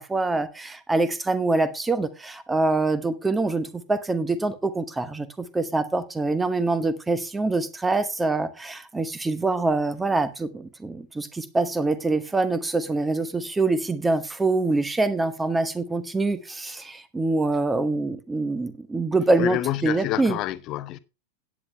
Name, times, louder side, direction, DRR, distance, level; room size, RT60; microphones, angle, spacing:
voice 1, 0.0-20.4, right 3 dB, 10° right, 1.0 m, -25 dB
voice 2, 19.4-21.0, left 15 dB, 35° left, 0.7 m, -28 dB
17.0 x 8.9 x 2.2 m
figure-of-eight pair, 90°, 0 cm